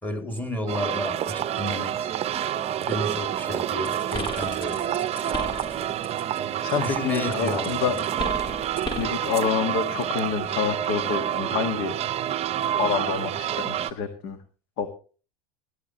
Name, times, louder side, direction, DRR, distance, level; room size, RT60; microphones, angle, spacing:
voice 1, 0.0-2.1 2.9-4.8 6.8-8.0, left 1 dB, 10° left, 2.7 m, -32 dB
sound 1, 0.7-13.9, right 11 dB, 35° right, 0.7 m, -28 dB
sound 2, 3.8-6.4 6.7-9.2, left 1 dB, 25° left, 2.8 m, -35 dB
voice 2, 6.6-7.9 9.0-11.9 12.8-14.4 14.8-14.9, left 6 dB, 55° left, 1.7 m, -27 dB
19.0 x 12.0 x 3.0 m
hypercardioid pair, 90°, 19 cm